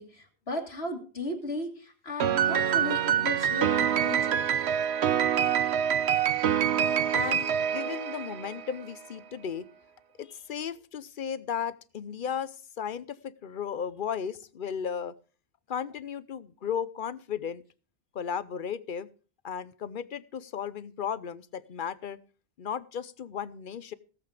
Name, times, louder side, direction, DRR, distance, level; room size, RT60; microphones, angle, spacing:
voice 1, 0.0-4.4, left 1 dB, 75° left, 2 dB, 2.4 m, -36 dB
Piano, 2.2-8.7, right 9 dB, 80° right, 1.1 m, -26 dB
voice 2, 7.1-9.7 10.2-15.1 15.7-17.6 18.1-19.1 19.4-22.2 22.6-23.9, left 7 dB, 55° left, 17 dB, 0.9 m, -35 dB
18.0 x 7.8 x 5.0 m, 0.37 s
omnidirectional pair, 1.1 m